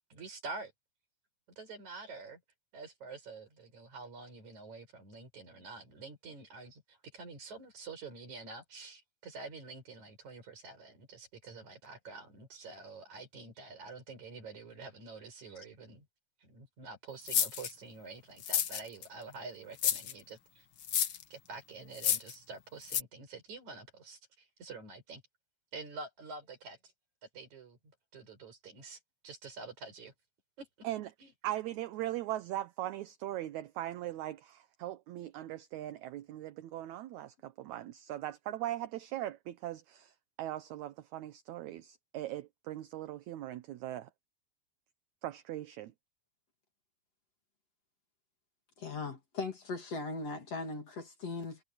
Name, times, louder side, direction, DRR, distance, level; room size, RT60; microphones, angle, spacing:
voice 1, 0.1-0.7 1.6-2.4 2.7-16.1 16.4-20.7 21.3-25.2 25.7-26.9 27.2-30.1 30.6-30.9 31.2-31.3, right 4 dB, 55° right, 6.6 m, -47 dB
sound 1, 17.3-17.7 18.4-19.1 19.8-20.1 20.8-21.2 21.9-22.3 22.9-23.0, left 9 dB, 65° left, 1.2 m, -30 dB
voice 2, 31.4-44.1 45.2-45.9, right 14 dB, 70° right, 1.9 m, -40 dB
voice 3, 48.8-51.6, left 3 dB, 45° left, 3.4 m, -39 dB
omnidirectional pair, 4.0 m